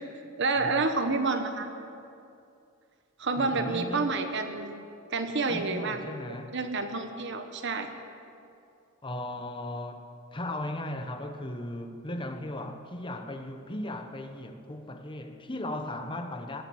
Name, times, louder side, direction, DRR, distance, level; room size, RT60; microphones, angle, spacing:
voice 1, 0.4-1.7 3.2-4.8 5.1-7.9, right 3 dB, 55° right, 1.0 m, -29 dB
voice 2, 3.4-4.2 5.5-6.6 9.0-16.6, left 1 dB, 20° left, 0.9 m, -37 dB
19.0 x 9.0 x 7.9 m
head